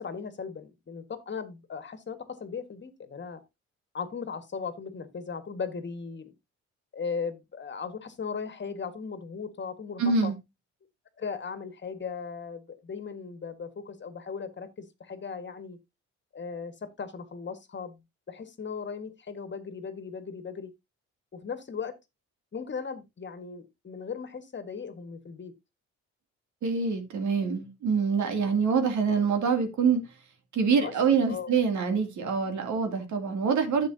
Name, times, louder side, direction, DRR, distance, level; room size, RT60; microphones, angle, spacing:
voice 1, 0.0-3.4 3.9-6.3 6.9-10.3 11.2-15.8 16.3-18.0 18.3-20.7 21.3-22.0 22.5-25.5 30.8-30.9 31.3-31.5, left 5 dB, 35° left, 1.6 m, -37 dB
voice 2, 10.0-10.4 26.6-30.0 30.5-33.9, right 5 dB, 70° right, 2.6 m, -25 dB
10.5 x 7.7 x 2.7 m
cardioid pair, 90°, 30 cm